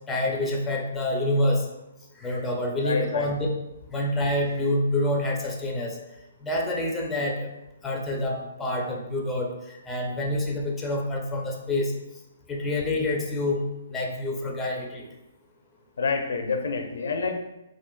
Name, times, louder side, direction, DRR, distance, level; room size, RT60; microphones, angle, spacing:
voice 1, 0.1-1.7 2.2-3.4 3.9-6.0 6.4-7.5 7.8-9.5 9.9-11.9 12.5-13.6 13.9-15.1, left 1 dB, 10° left, -1 dB, 0.5 m, -27 dB
voice 2, 2.8-3.3 16.0-17.3, left 4 dB, 65° left, 4 dB, 0.5 m, -27 dB
3.7 x 2.5 x 2.2 m, 0.91 s
hypercardioid pair, 135°, 0 cm